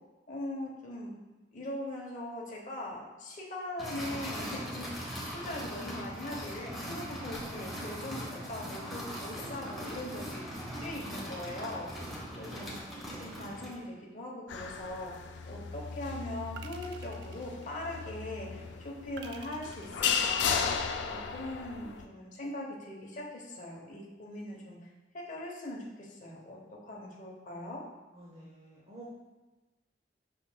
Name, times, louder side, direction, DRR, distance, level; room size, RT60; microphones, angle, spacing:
voice 1, 0.3-1.2 1.5-11.9 12.4-12.8 13.2-15.1 15.5-20.7 21.1-24.8 25.1-26.6 26.8-27.8, left 1 dB, 45° left, -2 dB, 0.9 m, -41 dB
sound 1, 3.8-13.8, equal, ahead, 1.0 m, -40 dB
voice 2, 12.0-12.8 13.0-13.7 15.3-15.8 28.1-29.1, right 1 dB, 35° right, -5 dB, 0.7 m, -53 dB
sound 2, 14.5-22.0, left 6 dB, 80° left, 0.3 m, -35 dB
sound 3, 15.0-15.6 16.6-18.2 19.2-20.9, right 5 dB, 70° right, 0.4 m, -51 dB
5.9 x 3.7 x 2.2 m, 1.1 s
head